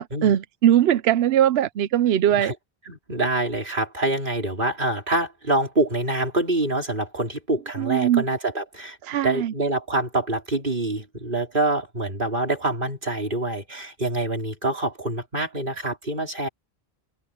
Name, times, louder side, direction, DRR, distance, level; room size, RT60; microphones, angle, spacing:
voice 1, 0.0-2.5 7.8-8.2 9.0-9.5, right 11 dB, 80° right, 0.8 m, -20 dB
voice 2, 2.9-9.0 9.2-16.5, right 2 dB, 55° right, 4.4 m, -26 dB
open air
omnidirectional pair, 1.0 m